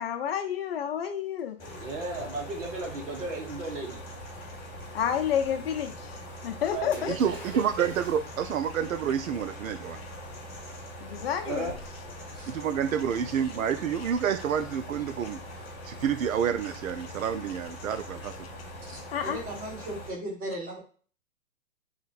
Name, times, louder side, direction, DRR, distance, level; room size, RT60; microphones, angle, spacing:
voice 1, 0.0-1.6 4.9-6.2 6.4-7.2 11.0-11.7 19.1-19.4, left 9 dB, 50° left, 7 dB, 0.5 m, -29 dB
sound 1, 1.6-20.1, equal, 25° left, 1.2 m, -42 dB
voice 2, 1.6-4.0 6.7-7.9 11.4-11.8 12.3-12.5 18.8-19.0, right 3 dB, 65° right, 1 dB, 1.7 m, -36 dB
Splash splatter, 6.9-8.7 9.6-9.7, left 1 dB, 5° left, 1.3 m, -49 dB
voice 3, 7.1-10.0 12.5-15.4 15.8-18.3, right 8 dB, 85° right, 9 dB, 0.5 m, -29 dB
voice 4, 19.2-20.8, right 1 dB, 20° right, -4 dB, 1.9 m, -36 dB
3.1 x 3.1 x 3.9 m, 0.41 s
hypercardioid pair, 135°, 40 cm